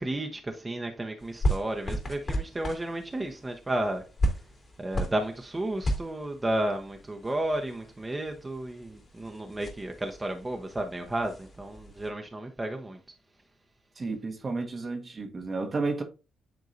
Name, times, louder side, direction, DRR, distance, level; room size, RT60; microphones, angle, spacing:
voice 1, 0.0-4.0 4.3-4.5 4.8-13.0, right 1 dB, 25° right, 1.0 m, -32 dB
sound 1, 1.2-12.1, equal, 45° left, 2.8 m, -35 dB
voice 2, 14.0-16.0, right 3 dB, 45° right, 1.3 m, -32 dB
9.5 x 3.8 x 2.7 m
hypercardioid pair, 50°, 0 cm